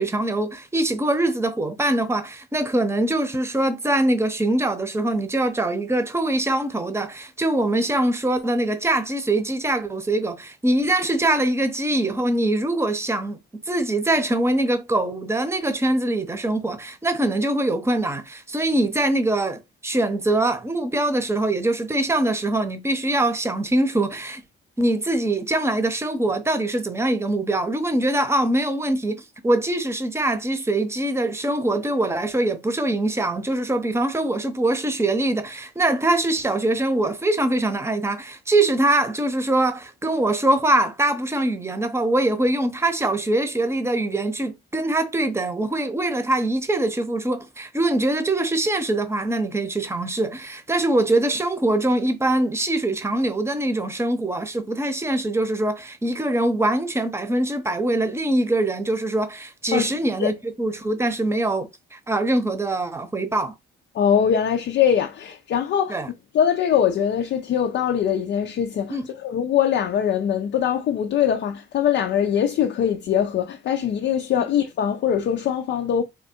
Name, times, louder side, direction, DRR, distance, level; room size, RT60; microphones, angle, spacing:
voice 1, 0.0-13.4 13.7-24.4 24.8-63.5 65.9-66.1 68.9-69.0, right 1 dB, 15° right, 0.8 m, -23 dB
voice 2, 63.9-66.0 66.3-76.0, left 9 dB, 65° left, 0.5 m, -22 dB
3.5 x 2.3 x 4.3 m
cardioid pair, 90°, 20 cm